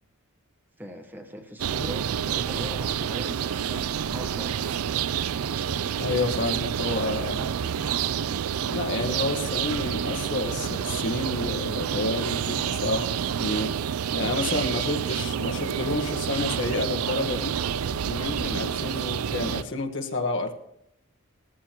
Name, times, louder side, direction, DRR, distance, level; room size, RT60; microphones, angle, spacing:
voice 1, 0.8-4.7 7.3-7.7, equal, 10° right, 4 dB, 1.3 m, -41 dB
sound 1, 1.6-19.6, right 8 dB, 80° right, 0.4 m, -28 dB
sound 2, 3.9-18.5, left 1 dB, 40° left, 1.3 m, -50 dB
voice 2, 6.0-7.4 8.7-13.7 14.1-17.5 18.0-20.5, left 2 dB, 60° left, 3 dB, 1.5 m, -29 dB
19.0 x 14.0 x 3.0 m, 0.75 s
head